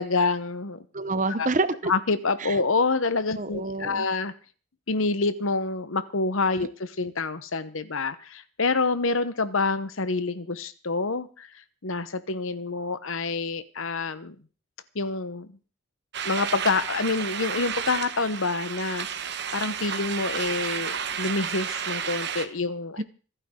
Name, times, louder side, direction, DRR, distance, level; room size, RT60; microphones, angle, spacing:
voice 1, 0.0-0.8 1.4-1.5 1.8-4.3 4.9-11.5 11.8-14.4 14.9-15.6 16.2-19.1 19.5-23.0, left 3 dB, 65° left, 14 dB, 1.0 m, -27 dB
voice 2, 0.9-1.9 2.4-2.6 3.4-4.1 23.0-23.1, right 3 dB, 35° right, 14 dB, 0.8 m, -27 dB
sound 1, 16.1-22.4, right 7 dB, 50° right, 1.2 m, -32 dB
26.5 x 9.2 x 3.8 m, 0.39 s
head